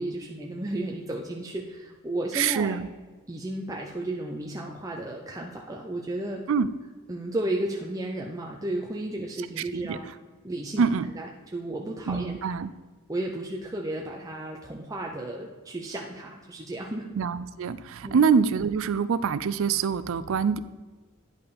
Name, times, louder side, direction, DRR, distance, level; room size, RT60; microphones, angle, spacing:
voice 1, 0.0-2.8 3.3-6.4 7.1-10.0 10.4-10.9 11.1-12.5 13.1-17.1 18.0-18.2, right 1 dB, 15° right, 0 dB, 0.5 m, -33 dB
voice 2, 2.3-2.9 6.5-6.7 9.7-10.1 10.8-11.1 12.1-12.7 17.1-20.6, right 6 dB, 65° right, 15 dB, 0.4 m, -25 dB
10.5 x 5.4 x 4.2 m, 1.3 s
head